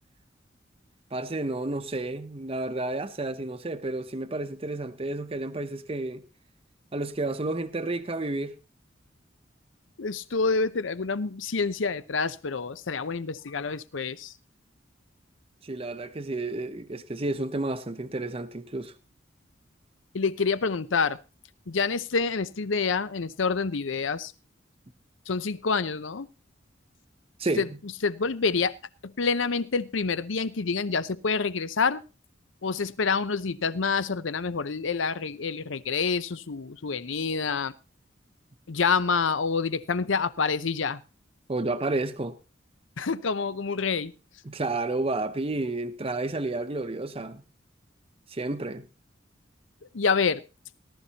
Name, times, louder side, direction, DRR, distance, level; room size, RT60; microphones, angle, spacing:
voice 1, 1.1-6.2 6.9-8.6 15.6-18.9 27.4-27.7 41.5-42.4 44.5-47.4 48.3-48.9, right 2 dB, 30° right, 0.7 m, -31 dB
voice 2, 10.0-14.3 20.1-21.2 21.7-24.3 25.3-26.3 27.6-27.7 28.0-28.8 29.0-32.0 32.6-37.7 38.7-41.0 43.0-44.1 49.9-50.4, left 5 dB, 85° left, 0.7 m, -27 dB
18.5 x 12.5 x 2.9 m
head